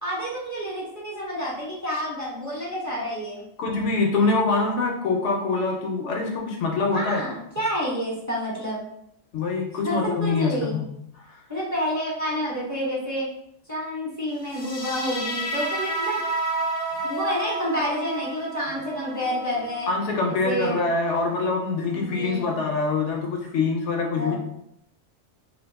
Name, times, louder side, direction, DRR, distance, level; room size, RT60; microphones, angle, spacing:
voice 1, 0.0-3.4 6.9-8.8 9.8-10.8 11.5-13.3 13.7-16.2 17.0-19.9 20.3-20.8 22.0-22.6 24.1-24.4, equal, 15° right, -6 dB, 0.8 m, -29 dB
voice 2, 3.6-7.2 9.3-10.9 11.1-11.4 19.9-24.4, left 3 dB, 70° left, 0 dB, 0.8 m, -24 dB
sound 1, 14.4-21.5, right 2 dB, 35° left, 0.4 m, -31 dB
2.8 x 2.4 x 3.5 m, 0.75 s
omnidirectional pair, 1.4 m